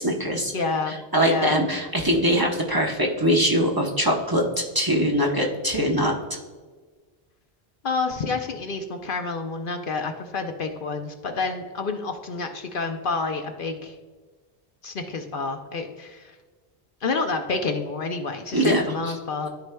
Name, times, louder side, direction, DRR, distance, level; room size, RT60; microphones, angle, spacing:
voice 1, 0.0-0.5 0.9-4.4 4.7-6.1 18.5-18.8, equal, 20° right, -1 dB, 0.9 m, -22 dB
voice 2, 0.5-0.9 1.2-1.6 7.8-13.9 14.8-16.3 17.0-19.5, left 4 dB, 60° left, 5 dB, 0.8 m, -29 dB
13.0 x 4.8 x 2.2 m, 1.4 s
omnidirectional pair, 1.1 m